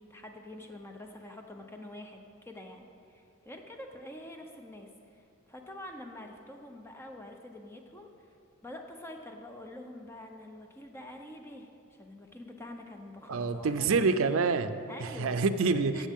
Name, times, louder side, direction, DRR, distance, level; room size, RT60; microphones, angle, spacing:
voice 1, 0.0-5.2 5.5-8.1 8.6-11.7 12.0-13.9 14.9-15.4 15.9-16.1, left 1 dB, 10° left, 3 dB, 0.7 m, -46 dB
voice 2, 13.3-16.1, right 4 dB, 70° right, 11 dB, 0.5 m, -27 dB
15.0 x 7.2 x 3.6 m, 2.5 s
head